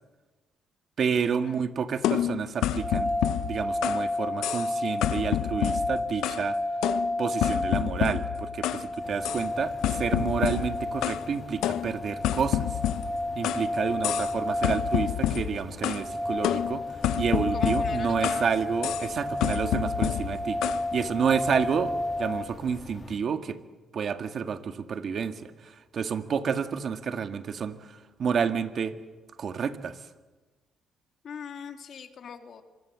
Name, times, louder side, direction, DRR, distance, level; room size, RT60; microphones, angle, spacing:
voice 1, 1.0-3.1 3.4-6.6 7.2-12.7 13.4-16.8 17.2-20.6 20.9-23.6 23.9-29.0 29.4-30.0, right 6 dB, 55° right, 8 dB, 1.8 m, -30 dB
sound 1, 2.0-4.1 4.4-4.7 5.0-6.5 6.8-8.9 9.2-9.5 9.8-11.3 11.6-13.7 14.0-14.4 14.6-16.1 16.4-18.5 18.8-19.1 19.4-20.8, left 12 dB, 85° left, 0.8 m, -29 dB
sound 2, 2.8-22.4, left 1 dB, 20° right, 4.1 m, -32 dB
sound 3, 9.0-23.2, left 4 dB, 35° left, 2.0 m, -46 dB
voice 2, 17.5-18.5 31.2-32.6, left 7 dB, 60° left, 6 dB, 2.6 m, -42 dB
25.5 x 23.5 x 7.5 m, 1.3 s
cardioid pair, 90°, 0 cm